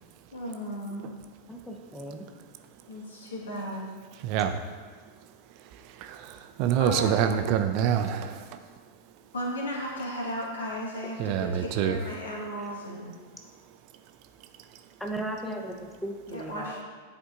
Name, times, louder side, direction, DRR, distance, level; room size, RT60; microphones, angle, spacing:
voice 1, 0.3-1.1 2.9-3.9 6.8-7.3 9.3-13.1 16.3-16.8, equal, 65° left, -2 dB, 1.5 m, -35 dB
voice 2, 1.5-2.2 11.0-11.1 12.6-12.7 15.0-16.8, right 1 dB, 5° left, 2 dB, 0.7 m, -37 dB
voice 3, 4.2-4.6 6.0-8.6 11.2-12.0, right 9 dB, 45° right, 8 dB, 0.5 m, -26 dB
10.5 x 4.4 x 2.5 m, 1.5 s
figure-of-eight pair, 90°, 0 cm